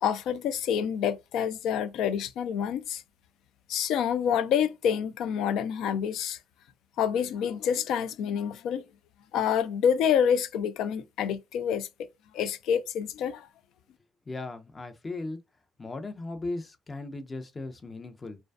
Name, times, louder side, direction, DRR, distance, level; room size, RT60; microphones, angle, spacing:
voice 1, 0.0-3.0 3.7-6.4 7.0-8.8 9.3-11.9 12.3-13.5, left 8 dB, 85° left, 0.3 m, -27 dB
voice 2, 14.3-15.4 15.8-18.4, left 2 dB, 30° left, 0.5 m, -37 dB
2.5 x 2.2 x 2.2 m
cardioid pair, 90°, 0 cm